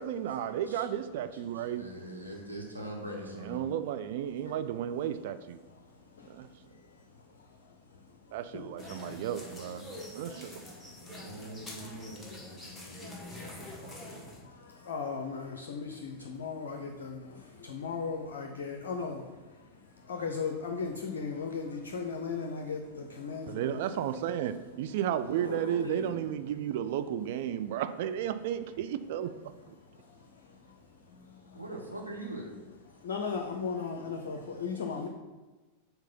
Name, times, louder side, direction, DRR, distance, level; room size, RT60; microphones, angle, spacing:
voice 1, 0.0-1.8 3.4-5.6 6.3-6.5 8.3-9.9 10.1-10.6 23.5-29.5, right 10 dB, 50° right, 11 dB, 0.3 m, -33 dB
voice 2, 1.5-3.6 8.6-9.9 11.0-13.9 25.3-26.2 31.5-32.5, right 1 dB, 90° right, -1 dB, 1.0 m, -43 dB
sound 1, 8.8-14.4, left 1 dB, 5° left, 1.3 m, -46 dB
voice 3, 14.9-17.2 17.7-19.2 20.1-22.8 23.2-23.8 33.0-35.1, left 5 dB, 60° left, 3 dB, 0.5 m, -36 dB
4.6 x 3.8 x 5.4 m, 1.2 s
figure-of-eight pair, 90°, 0 cm